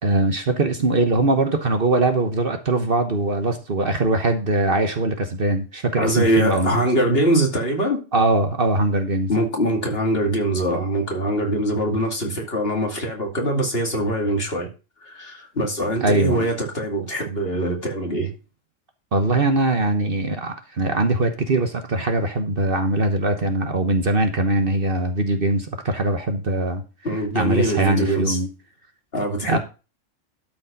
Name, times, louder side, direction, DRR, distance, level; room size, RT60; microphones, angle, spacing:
voice 1, 0.0-6.8 8.1-9.3 16.0-16.5 19.1-26.8 27.3-28.5 29.5-29.6, right 2 dB, 45° right, 1.3 m, -21 dB
voice 2, 6.0-8.0 9.3-14.7 15.0-18.3 27.0-28.4 29.1-29.6, right 1 dB, 45° left, 2.8 m, -23 dB
12.5 x 5.2 x 5.2 m
omnidirectional pair, 1.4 m